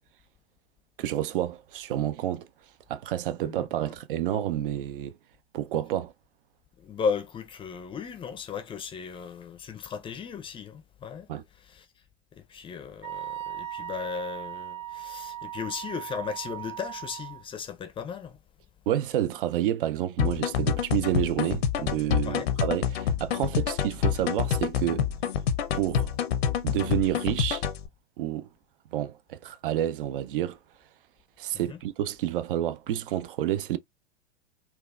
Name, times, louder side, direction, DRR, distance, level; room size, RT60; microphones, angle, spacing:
voice 1, 1.0-2.5 2.9-5.1 5.5-6.1 11.3-11.4 18.9-25.1 25.7-26.1 26.6-27.6 28.2-28.5 28.9-30.6 31.4-33.8, right 12 dB, 55° right, 0.5 m, -29 dB
voice 2, 6.8-11.3 11.6-11.9 12.3-18.4 22.2-22.5 31.7-31.8, left 6 dB, 15° left, 0.5 m, -36 dB
Wind instrument woodwind instrument, 13.0-17.4, right 12 dB, 80° right, 1.4 m, -38 dB
sound 1, 20.2-27.9, left 8 dB, 70° left, 0.7 m, -27 dB
4.3 x 2.3 x 2.3 m
hypercardioid pair, 105°, 32 cm